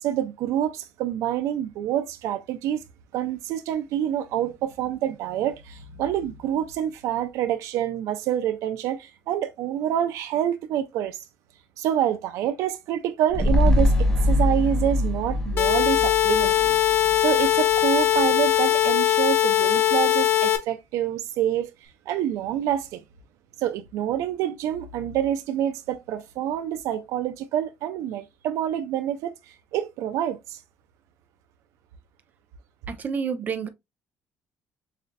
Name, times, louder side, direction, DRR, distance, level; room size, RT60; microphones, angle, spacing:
voice 1, 0.0-2.8 3.1-11.2 11.8-16.8 17.2-21.7 22.1-23.0 23.6-30.6, right 11 dB, 75° right, 0.5 m, -27 dB
sound 1, 13.3-17.8 18.2-18.3, left 1 dB, 10° left, 1.0 m, -23 dB
sound 2, 15.6-20.6, left 12 dB, 45° left, 0.9 m, -20 dB
voice 2, 32.9-33.7, right 6 dB, 35° right, 0.6 m, -29 dB
6.5 x 2.5 x 2.2 m
cardioid pair, 135°, 5 cm